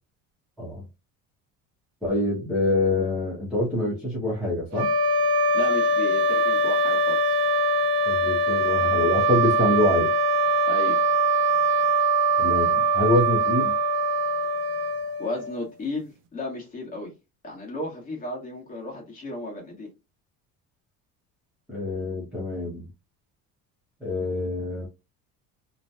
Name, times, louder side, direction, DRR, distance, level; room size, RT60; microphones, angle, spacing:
voice 1, 2.0-4.9 8.1-10.1 12.4-13.7 21.7-22.9 24.0-24.9, left 1 dB, ahead, 0.8 m, -25 dB
sound 1, 4.7-15.7, right 2 dB, 45° right, 0.5 m, -22 dB
voice 2, 5.5-7.4 10.7-11.0 15.2-17.1 17.4-19.9, left 1 dB, 25° left, 1.3 m, -34 dB
3.1 x 2.2 x 2.6 m
cardioid pair, 180°, 34 cm